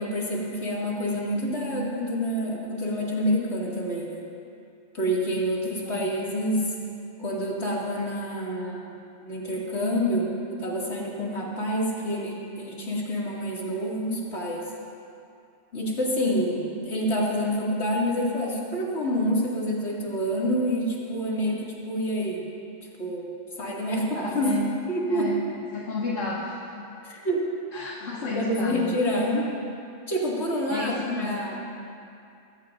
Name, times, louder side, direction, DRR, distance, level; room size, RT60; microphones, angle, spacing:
voice 1, 0.0-4.2 4.9-6.7 7.2-8.9 9.2-14.6 15.7-22.4 23.0-23.3 23.6-24.6 24.9-25.3 27.0-27.5 28.3-29.5 30.1-31.6, equal, 60° left, -5 dB, 2.7 m, -27 dB
voice 2, 25.1-25.4 25.7-26.9 27.7-28.9 30.7-31.5, left 3 dB, 75° left, -4 dB, 1.6 m, -32 dB
22.0 x 14.5 x 2.6 m, 2.5 s
omnidirectional pair, 1.3 m